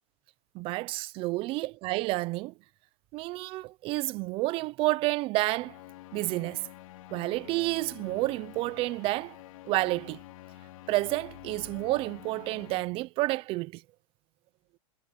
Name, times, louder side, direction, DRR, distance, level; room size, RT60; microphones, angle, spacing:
voice 1, 0.5-2.5 3.1-5.8 6.1-6.7 7.1-9.4 9.6-10.2 10.9-13.8, right 20 dB, 30° right, 0.6 m, -30 dB
sound 1, 5.5-12.8, left 15 dB, 65° left, 3.2 m, -48 dB
supercardioid pair, 150°, 19 cm